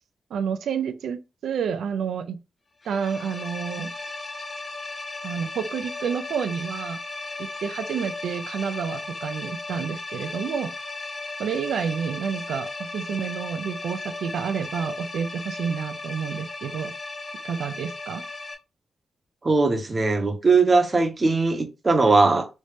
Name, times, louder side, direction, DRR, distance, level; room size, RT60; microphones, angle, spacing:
voice 1, 0.3-2.4 2.8-3.9 5.2-7.0 7.4-10.7 11.4-16.9 17.4-18.2, right 7 dB, 85° right, 0.4 m, -29 dB
sound 1, 2.8-18.5, left 3 dB, 30° left, 0.6 m, -36 dB
voice 2, 19.4-22.5, right 3 dB, 30° right, 0.7 m, -20 dB
3.1 x 2.7 x 3.2 m
wide cardioid pair, 130°, 0 cm